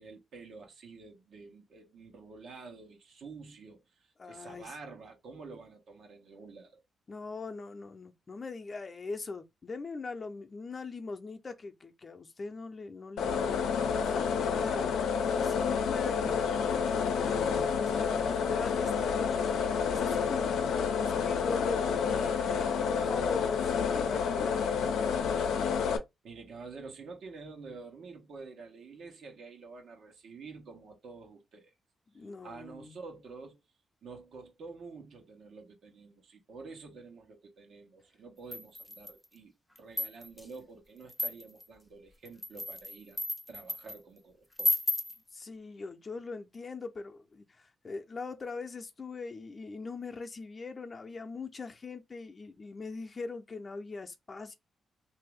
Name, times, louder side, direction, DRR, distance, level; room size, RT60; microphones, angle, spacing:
voice 1, 0.0-3.8 4.3-6.8 26.2-31.7 32.4-33.6 34.0-39.5 39.8-43.2 43.5-44.8, right 4 dB, 75° right, 1.1 m, -48 dB
voice 2, 4.2-4.7 7.1-13.6 13.9-24.7 32.1-33.0 45.3-54.6, left 4 dB, 40° left, 0.7 m, -41 dB
sound 1, 13.2-26.0, left 6 dB, 90° left, 0.6 m, -29 dB
sound 2, 38.5-39.3 39.8-40.5 41.1-41.7 42.3-44.0 44.6-45.2, left 1 dB, 10° left, 0.8 m, -33 dB
3.0 x 2.7 x 3.4 m
cardioid pair, 70°, 0 cm